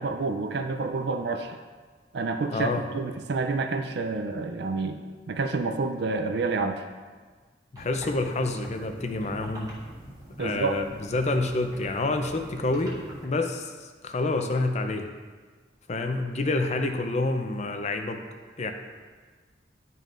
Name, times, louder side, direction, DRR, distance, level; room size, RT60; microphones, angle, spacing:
voice 1, 0.0-1.6 2.1-5.0 5.3-6.8 10.4-10.8, right 3 dB, 65° right, 6 dB, 0.4 m, -28 dB
voice 2, 2.5-2.8 7.7-9.7 10.4-15.1 15.9-18.2 18.6-18.7, left 2 dB, 40° left, 5 dB, 0.6 m, -28 dB
sound 1, 7.8-13.3, equal, 20° right, 1.6 m, -44 dB
11.0 x 5.4 x 2.5 m, 1.4 s
head